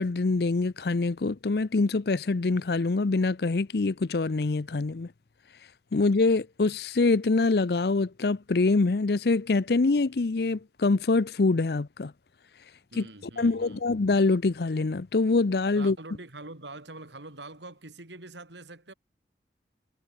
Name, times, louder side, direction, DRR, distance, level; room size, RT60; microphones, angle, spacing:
voice 1, 0.0-5.1 5.9-12.1 13.0-13.1 13.4-15.9, left 3 dB, 60° left, 0.6 m, -25 dB
voice 2, 12.9-13.8 15.7-18.9, right 2 dB, 80° right, 3.5 m, -44 dB
head